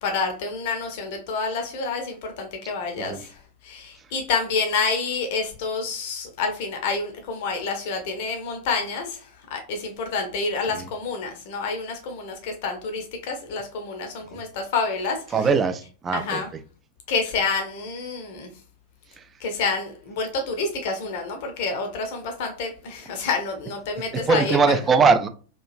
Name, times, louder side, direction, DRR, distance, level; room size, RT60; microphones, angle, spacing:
voice 1, 0.0-3.4 3.6-15.2 16.1-16.5 17.1-18.5 19.4-24.8, left 4 dB, 50° left, 0.6 m, -28 dB
voice 2, 15.3-16.4 24.3-25.3, right 5 dB, 20° right, 0.3 m, -20 dB
2.9 x 2.3 x 2.4 m
figure-of-eight pair, 90°, 0 cm